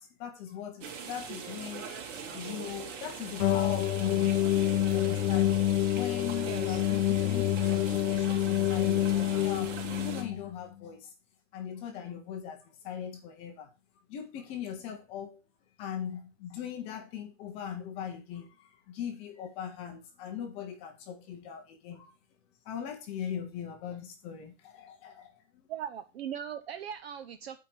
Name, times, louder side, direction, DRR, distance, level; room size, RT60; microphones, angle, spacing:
voice 1, 0.0-1.9 2.3-4.4 4.9-5.6 5.9-11.1 11.5-13.7 14.1-15.4 15.8-22.1 22.6-25.7, left 8 dB, 15° left, 0.6 m, -40 dB
sound 1, 0.8-10.2, right 6 dB, 70° right, 3.1 m, -41 dB
sound 2, 3.4-10.5, left 13 dB, 85° left, 0.7 m, -27 dB
voice 2, 6.5-6.8 25.7-27.6, right 9 dB, 50° right, 0.7 m, -39 dB
8.9 x 4.7 x 5.9 m
supercardioid pair, 180°, 39 cm